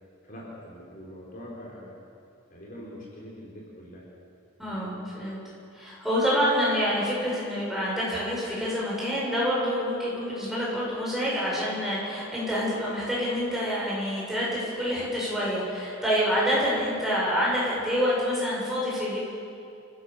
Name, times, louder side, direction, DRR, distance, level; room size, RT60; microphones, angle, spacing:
voice 1, 0.2-1.9 2.5-4.0 4.6-4.9, equal, 40° left, -4 dB, 4.5 m, -43 dB
voice 2, 4.6-5.4 5.7-19.2, equal, ahead, -6 dB, 7.1 m, -27 dB
28.5 x 16.5 x 6.9 m, 2.6 s
head